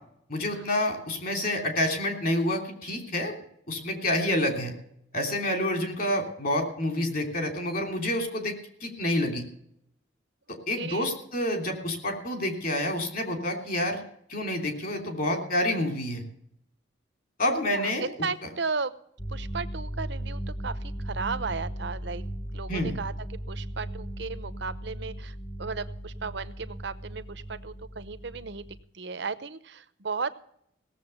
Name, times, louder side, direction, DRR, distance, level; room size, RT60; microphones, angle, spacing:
voice 1, 0.3-3.3 3.7-4.7 5.1-8.5 8.8-9.5 10.7-14.0 14.3-16.2 17.4-18.1 22.7-22.9, left 1 dB, 50° left, 4 dB, 3.1 m, -28 dB
voice 2, 10.8-11.3 17.7-18.9 19.3-22.2 22.5-28.7 28.9-30.3, right 4 dB, 60° right, 13 dB, 0.8 m, -35 dB
sound 1, 19.2-28.8, right 1 dB, 10° left, 0.9 m, -37 dB
17.5 x 7.4 x 6.9 m, 0.70 s
head